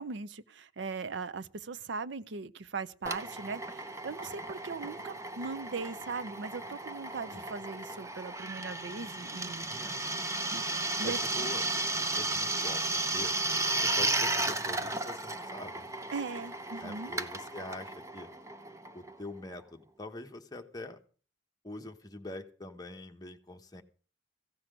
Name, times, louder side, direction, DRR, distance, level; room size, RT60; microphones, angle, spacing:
voice 1, 0.0-9.6 10.5-10.6 11.0-11.2 16.1-17.1, right 4 dB, 70° right, 0.6 m, -39 dB
Drill, 3.1-19.4, right 2 dB, 15° right, 0.7 m, -34 dB
voice 2, 9.7-10.0 11.0-11.7 12.0-13.3 13.8-15.8 16.8-18.3 18.9-21.0 21.6-23.8, left 2 dB, 20° left, 1.1 m, -44 dB
16.0 x 6.0 x 8.8 m
head